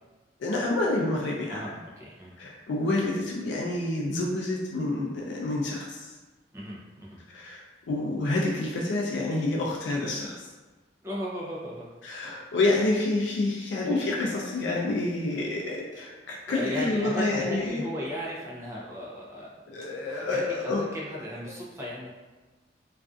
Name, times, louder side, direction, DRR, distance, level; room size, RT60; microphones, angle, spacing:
voice 1, 0.4-1.7 2.4-6.1 7.3-7.6 7.9-10.5 12.0-17.8 19.7-20.8, left 2 dB, 80° left, -2 dB, 0.4 m, -28 dB
voice 2, 1.5-2.3 6.5-7.2 11.0-11.9 16.5-19.6 20.1-22.1, equal, 15° right, -6 dB, 0.4 m, -36 dB
2.4 x 2.4 x 2.3 m, 1.2 s
head